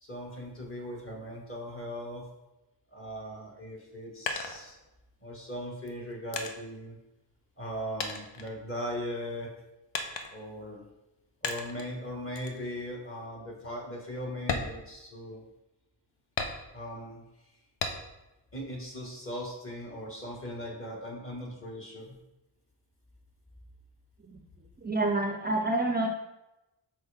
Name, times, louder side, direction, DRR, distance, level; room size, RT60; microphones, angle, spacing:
voice 1, 0.0-2.2 2.9-4.7 5.2-7.0 7.6-9.5 10.3-10.8 11.4-15.4 16.7-17.2 18.5-22.2, equal, 30° left, -1 dB, 1.7 m, -39 dB
sound 1, 3.7-5.2 5.9-7.7 8.0-9.2 9.9-10.6 11.4-11.9 12.4-12.6 13.1-13.2 13.6-13.8 14.4-15.6 16.4-17.0 17.8-18.3 18.7-19.6, left 4 dB, 75° left, 0.8 m, -37 dB
voice 2, 24.8-26.1, right 2 dB, 20° right, 2 dB, 0.5 m, -28 dB
6.3 x 4.3 x 3.5 m, 0.97 s
cardioid pair, 80°, 44 cm